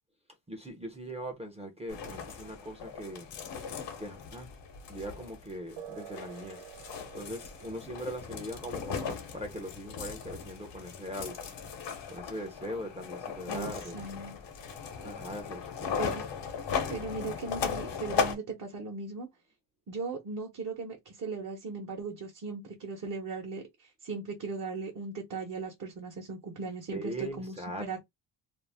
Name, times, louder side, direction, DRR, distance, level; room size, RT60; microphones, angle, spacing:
voice 1, 0.5-3.3 4.0-4.5 4.9-6.6 7.1-11.4 12.1-14.0 15.0-16.0 26.9-28.0, right 1 dB, 15° right, 0.6 m, -40 dB
sound 1, 1.9-18.4, left 6 dB, 70° left, 0.9 m, -37 dB
sound 2, 5.8-13.8, right 8 dB, 75° right, 0.8 m, -52 dB
voice 2, 13.5-14.4 16.0-16.2 16.9-19.3 19.9-28.0, right 4 dB, 45° right, 0.9 m, -38 dB
2.6 x 2.0 x 3.3 m
cardioid pair, 120°, 44 cm